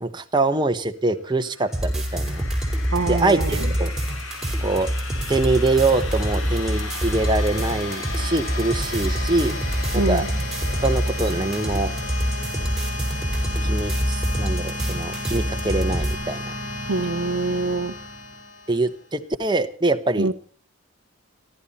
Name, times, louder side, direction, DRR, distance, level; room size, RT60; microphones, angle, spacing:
voice 1, 0.0-2.4 3.0-4.0 4.6-4.9 5.3-9.6 9.9-10.2 10.8-11.9 13.6-16.5 18.7-20.3, right 2 dB, 20° right, 7 dB, 1.0 m, -24 dB
sound 1, 1.4-19.0, left 2 dB, 70° left, 3.8 m, -34 dB
sound 2, 1.7-16.1, equal, ahead, 4.4 m, -26 dB
voice 2, 2.9-3.7 9.9-10.3 16.9-17.9 20.2-20.3, right 3 dB, 75° right, 13 dB, 0.8 m, -25 dB
29.5 x 12.0 x 4.2 m, 0.39 s
head